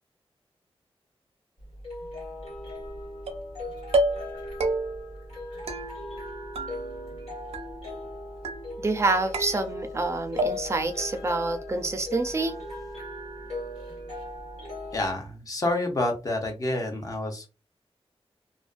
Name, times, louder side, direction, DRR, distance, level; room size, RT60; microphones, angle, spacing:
sound 1, 1.6-15.1, left 1 dB, 85° left, 1.3 m, -39 dB
sound 2, 3.3-3.6 3.9-4.3 4.6-5.1 5.7-6.3 6.6-7.2 7.5-8.1 8.4-9.0 9.3-10.0 10.4-10.9, right 1 dB, 85° right, 0.4 m, -30 dB
voice 1, 8.8-12.6, right 2 dB, 25° right, 7 dB, 0.4 m, -27 dB
voice 2, 14.9-17.5, left 2 dB, 35° left, 2 dB, 0.6 m, -28 dB
2.5 x 2.1 x 2.4 m, 0.30 s
wide cardioid pair, 130°, 10 cm